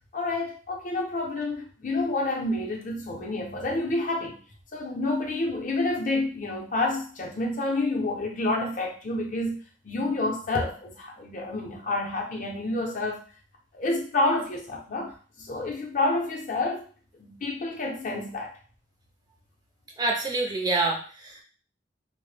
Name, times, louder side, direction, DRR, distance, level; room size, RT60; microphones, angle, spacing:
voice 1, 0.1-4.4 4.7-9.6 9.8-13.2 13.7-16.8 17.2-18.5, left 2 dB, 45° left, 0 dB, 0.6 m, -29 dB
voice 2, 20.0-21.4, right 2 dB, 20° right, 0 dB, 0.4 m, -27 dB
2.1 x 2.0 x 3.2 m, 0.40 s
head